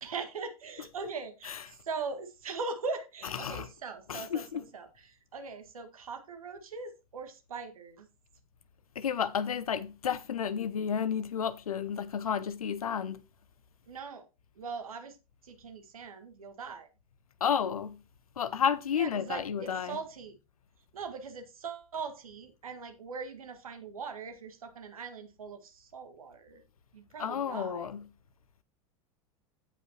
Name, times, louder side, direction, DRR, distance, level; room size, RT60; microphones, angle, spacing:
voice 1, 0.0-8.1 13.9-14.3 14.6-15.2 15.4-16.9 18.9-20.4 20.9-26.6 26.9-27.9, right 4 dB, 75° right, 1.8 m, -41 dB
voice 2, 3.3-3.7 4.1-4.6 9.0-13.2 17.4-18.0 18.4-20.0 27.2-28.0, left 7 dB, 75° left, 0.8 m, -31 dB
16.0 x 5.4 x 2.9 m
figure-of-eight pair, 85°, 18 cm